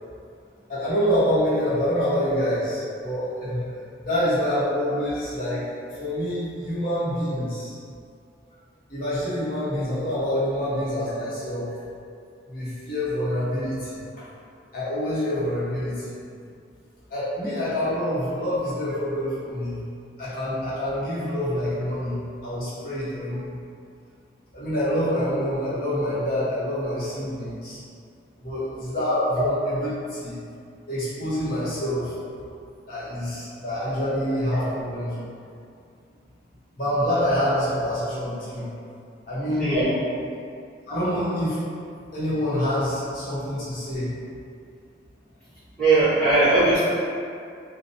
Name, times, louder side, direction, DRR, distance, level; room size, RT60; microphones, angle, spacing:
voice 1, 0.7-3.7 4.0-5.7 6.0-7.7 8.9-11.7 12.5-14.2 14.7-16.1 17.1-19.8 20.2-23.5 24.5-27.8 28.4-29.5 29.8-30.4 30.9-32.1 32.9-35.3 36.8-38.7 39.2-39.7 40.9-41.6 42.1-44.1, equal, 50° left, -11 dB, 0.9 m, -26 dB
voice 2, 39.6-40.0 45.8-46.8, right 2 dB, 5° left, -17 dB, 0.9 m, -20 dB
2.7 x 2.0 x 2.6 m, 2.4 s
head